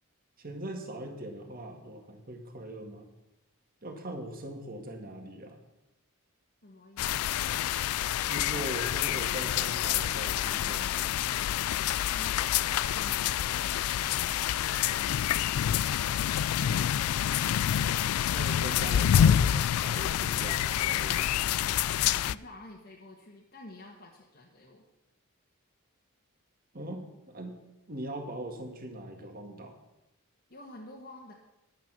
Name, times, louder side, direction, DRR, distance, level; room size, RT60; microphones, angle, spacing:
voice 1, 0.4-3.1 3.8-5.6 8.2-11.3 18.3-21.6 26.7-27.6 27.9-29.8, right 1 dB, 40° right, 4 dB, 1.9 m, -41 dB
voice 2, 6.6-7.3 12.0-17.4 21.6-24.9 30.5-31.3, left 1 dB, 45° left, -2 dB, 1.4 m, -49 dB
sound 1, 7.0-22.3, left 10 dB, 85° left, 0.3 m, -27 dB
11.5 x 8.8 x 6.1 m, 0.94 s
head